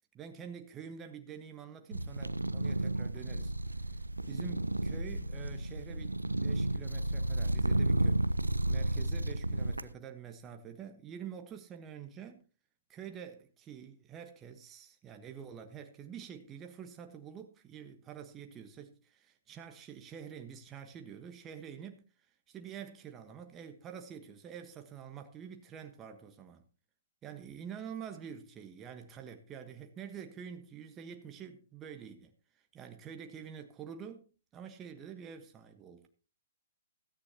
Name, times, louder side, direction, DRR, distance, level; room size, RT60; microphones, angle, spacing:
voice 1, 0.1-6.1 6.4-8.2 8.7-12.4 12.9-22.0 22.5-26.6 27.2-36.1, right 8 dB, 20° right, 1.3 m, -47 dB
sound 1, 1.9-9.9, right 1 dB, 85° right, 0.7 m, -32 dB
16.0 x 14.0 x 2.9 m
figure-of-eight pair, 120°, 0 cm